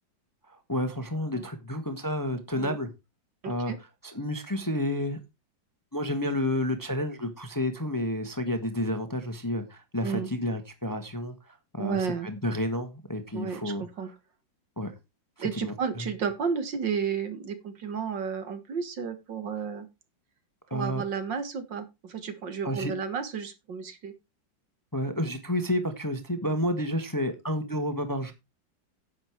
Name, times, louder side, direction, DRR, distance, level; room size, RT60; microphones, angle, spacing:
voice 1, 0.5-2.9 3.5-3.7 4.0-5.2 5.9-12.0 12.2-14.1 14.8-14.9 15.4-15.7 20.7-21.0 22.6-22.9 24.9-28.3, left 1 dB, 10° left, 8 dB, 1.1 m, -30 dB
voice 2, 3.4-3.8 10.0-10.3 11.8-12.3 13.3-14.1 15.4-19.9 20.7-24.1, right 6 dB, 70° right, 10 dB, 2.4 m, -32 dB
10.5 x 7.7 x 4.6 m, 0.25 s
omnidirectional pair, 2.1 m